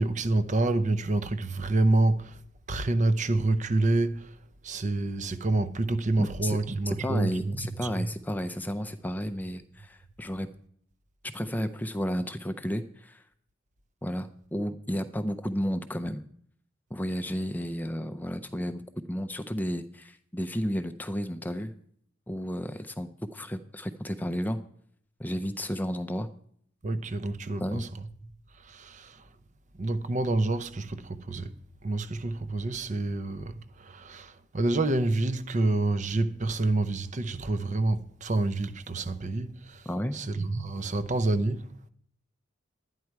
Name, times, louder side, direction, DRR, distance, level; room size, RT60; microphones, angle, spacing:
voice 1, 0.0-2.4 2.7-4.4 4.6-8.1 26.8-27.9 28.6-29.2 29.8-31.5 31.8-41.7, right 2 dB, 40° right, 0.6 m, -28 dB
voice 2, 6.2-6.6 6.9-10.5 11.3-13.2 14.0-16.2 16.9-18.8 19.1-21.7 22.3-24.6 25.2-26.3 27.6-27.9 39.9-40.2, equal, 10° left, 0.5 m, -32 dB
11.5 x 9.7 x 4.6 m
head